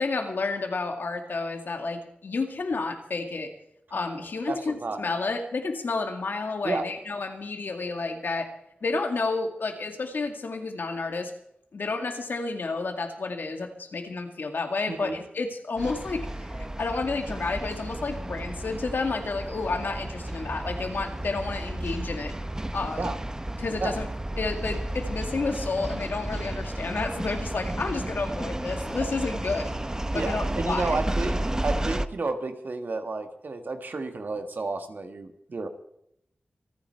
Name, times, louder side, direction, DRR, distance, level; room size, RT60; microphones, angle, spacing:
voice 1, 0.0-3.5 3.9-8.5 8.8-11.3 11.7-22.3 22.7-23.1 23.6-24.1 24.4-29.7 30.1-31.0, left 3 dB, 75° left, 4 dB, 2.2 m, -30 dB
voice 2, 4.5-5.0 6.6-6.8 14.9-15.2 23.0-23.2 23.8-23.9 30.1-35.7, right 3 dB, 65° right, 7 dB, 1.6 m, -31 dB
sound 1, 15.8-32.1, right 1 dB, 20° right, 0.7 m, -32 dB
26.0 x 9.5 x 4.5 m, 0.76 s
wide cardioid pair, 80°, 3 cm